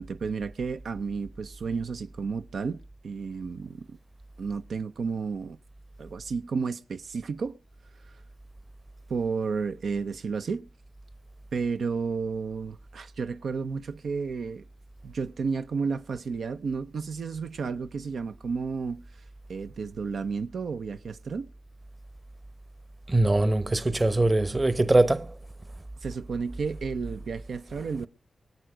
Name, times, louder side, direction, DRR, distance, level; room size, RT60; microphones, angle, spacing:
voice 1, 0.0-2.8 3.0-4.0 4.4-5.6 6.0-7.6 8.0-8.2 9.1-10.7 11.5-14.6 15.0-19.0 19.5-21.5 26.0-28.1, right 5 dB, 85° right, 0.7 m, -32 dB
voice 2, 23.1-25.4, right 2 dB, 25° right, 1.0 m, -22 dB
22.5 x 8.1 x 5.0 m
wide cardioid pair, 80°, 0 cm